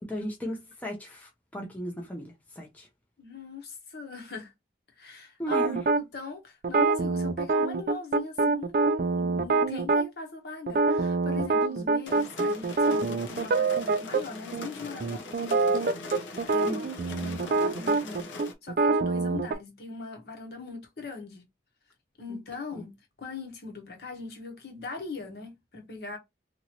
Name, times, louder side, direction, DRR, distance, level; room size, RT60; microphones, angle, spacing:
voice 1, 0.1-2.9 5.4-5.8 16.6-16.8 22.3-22.4 22.7-22.8, equal, 10° left, 0.6 m, -36 dB
voice 2, 3.2-4.5 5.0-5.6 6.0-16.8 17.2-21.4 22.2-22.9 23.2-26.2, left 4 dB, 55° left, 1.0 m, -41 dB
sound 1, 5.5-6.0 6.6-10.1 10.7-14.2 14.5-14.7 15.0-19.5, right 3 dB, 50° right, 0.3 m, -25 dB
sound 2, 12.1-18.5, left 2 dB, 90° left, 0.8 m, -41 dB
2.9 x 2.6 x 2.9 m
head